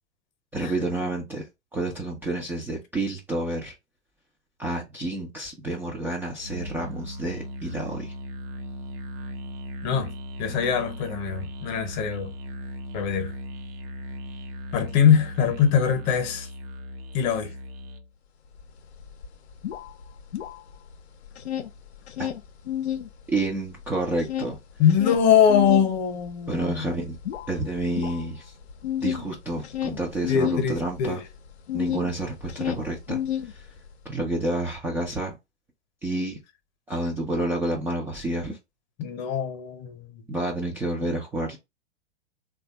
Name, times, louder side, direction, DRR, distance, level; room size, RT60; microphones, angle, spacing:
voice 1, 0.5-1.5 1.7-3.7 4.6-8.1 22.2-22.3 23.3-24.6 26.5-27.2 27.5-28.5 29.0-31.2 31.7-33.2 33.5-33.7 34.0-35.3 36.0-36.4 36.9-38.6 40.3-41.6, right 2 dB, 5° right, 0.3 m, -29 dB
Musical instrument, 6.4-18.1, equal, 55° right, 0.7 m, -38 dB
voice 2, 9.8-10.1 10.4-12.3 12.9-13.3 14.7-16.5 17.1-17.5 24.8-26.9 30.3-31.2 39.0-40.2, left 8 dB, 40° left, 0.8 m, -22 dB
sound 1, 18.6-18.7 18.9-20.9 21.2-23.1 23.5-32.1 32.4-33.9, left 11 dB, 70° left, 0.6 m, -31 dB
3.3 x 2.3 x 2.7 m
figure-of-eight pair, 105°, 34 cm